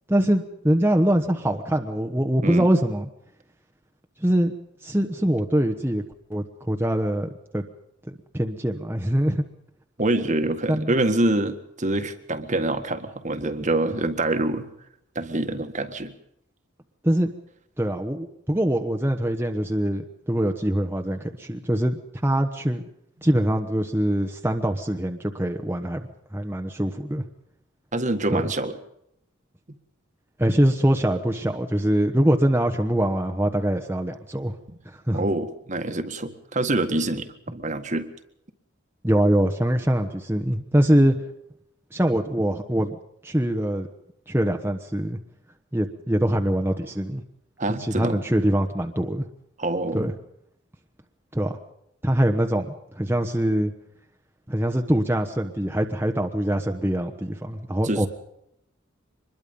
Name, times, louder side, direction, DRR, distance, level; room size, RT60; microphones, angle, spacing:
voice 1, 0.1-3.1 4.2-4.5 4.8-6.0 6.3-7.6 8.1-9.4 10.7-10.9 17.0-17.3 17.8-22.8 23.2-27.2 28.3-28.4 30.4-34.5 34.8-35.2 39.0-41.1 41.9-43.0 43.2-43.9 44.3-45.2 45.7-47.2 47.7-49.2 49.9-50.1 51.3-51.5 52.0-53.7 54.5-58.1, right 1 dB, 10° right, 3 dB, 1.2 m, -23 dB
voice 2, 10.0-14.7 15.2-16.1 27.9-28.8 35.1-38.1 47.6-48.2 49.6-50.1 57.8-58.1, right 2 dB, 40° right, 8 dB, 1.7 m, -25 dB
24.5 x 21.5 x 5.4 m, 0.77 s
head